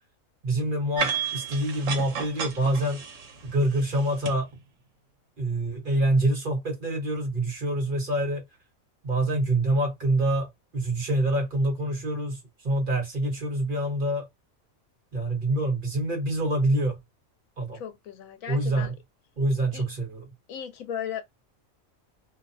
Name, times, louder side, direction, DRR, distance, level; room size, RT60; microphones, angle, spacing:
voice 1, 0.4-3.0 3.4-4.5 5.4-8.4 9.0-14.3 15.1-17.0 17.6-17.8 18.5-18.9 19.4-20.2, right 1 dB, 40° right, 1.1 m, -26 dB
sound 1, 1.0-4.3, right 6 dB, 70° right, 1.1 m, -32 dB
voice 2, 17.7-18.9 19.7-19.9 20.5-21.2, left 9 dB, 75° left, 1.0 m, -36 dB
2.7 x 2.0 x 2.6 m
omnidirectional pair, 1.5 m